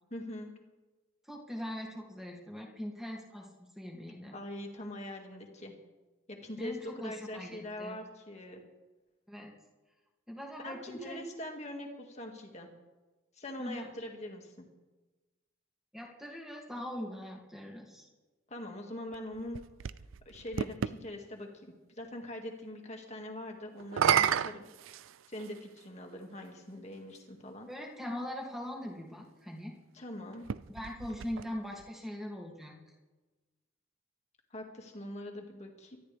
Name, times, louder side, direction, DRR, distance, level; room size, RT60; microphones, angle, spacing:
voice 1, 0.1-0.5 4.3-5.8 6.3-8.6 10.6-12.7 13.4-14.7 18.5-19.6 20.3-24.6 25.3-27.7 29.9-30.4 34.5-36.0, left 1 dB, 35° left, 2 dB, 2.2 m, -43 dB
voice 2, 1.3-4.4 6.6-8.0 9.3-9.5 10.3-11.2 13.6-13.9 15.9-18.1 27.7-29.7 30.7-32.8, left 1 dB, ahead, -1 dB, 2.5 m, -41 dB
Spill Glass, 19.1-21.0 23.8-25.6 26.5-26.6 30.3-31.9, right 8 dB, 80° right, 0.4 m, -32 dB
23.5 x 13.0 x 3.5 m, 1.2 s
head